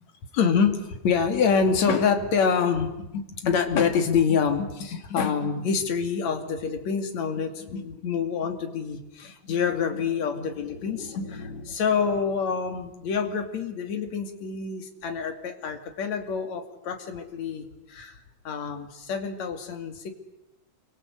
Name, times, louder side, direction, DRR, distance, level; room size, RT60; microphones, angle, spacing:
voice 1, 0.3-18.2 18.5-20.1, left 6 dB, 55° left, 6 dB, 3.8 m, -26 dB
29.0 x 24.5 x 8.3 m, 0.90 s
omnidirectional pair, 3.9 m